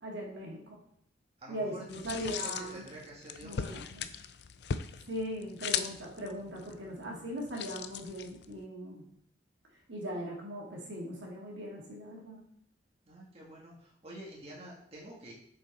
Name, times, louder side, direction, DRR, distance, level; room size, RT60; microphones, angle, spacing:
voice 1, 0.0-0.8 1.5-2.9 3.4-4.1 5.1-9.1 9.9-12.4, equal, 75° right, -2 dB, 2.0 m, -39 dB
voice 2, 1.4-3.6 13.0-15.3, right 1 dB, 35° right, -4 dB, 1.6 m, -48 dB
sound 1, 1.9-8.6, left 7 dB, 60° left, 0.4 m, -39 dB
6.7 x 5.4 x 4.1 m, 0.73 s
head